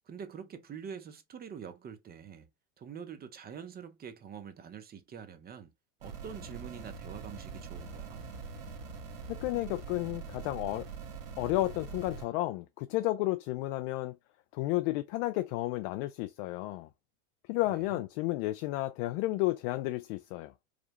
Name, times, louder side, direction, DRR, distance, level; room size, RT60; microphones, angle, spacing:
voice 1, 0.1-2.5 2.8-5.7 6.0-8.2 17.7-18.0, right 7 dB, 25° right, 0.7 m, -45 dB
sound 1, 6.0-12.3, right 5 dB, 70° right, 1.6 m, -43 dB
voice 2, 9.3-10.9 11.4-14.2 14.5-16.9 17.5-20.5, left 17 dB, 55° left, 0.5 m, -32 dB
4.9 x 2.2 x 3.0 m
supercardioid pair, 115°, 40 cm